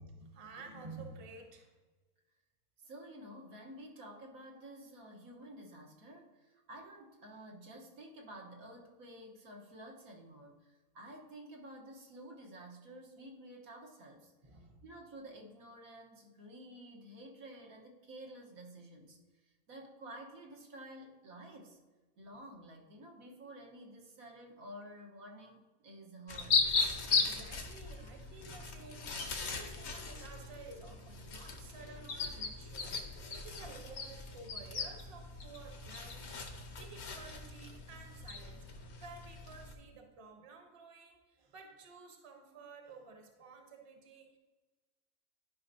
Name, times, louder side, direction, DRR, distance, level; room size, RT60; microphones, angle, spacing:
voice 1, 0.0-1.7 14.4-14.9 26.9-44.4, right 4 dB, 30° right, 4 dB, 0.8 m, -53 dB
voice 2, 2.8-10.6 10.9-14.3 14.8-19.2 19.7-21.8 22.2-26.6, right 1 dB, 80° right, -1 dB, 1.6 m, -51 dB
sound 1, 26.3-39.7, left 4 dB, 55° left, 1.1 m, -37 dB
11.0 x 5.2 x 2.7 m, 1.3 s
omnidirectional pair, 1.5 m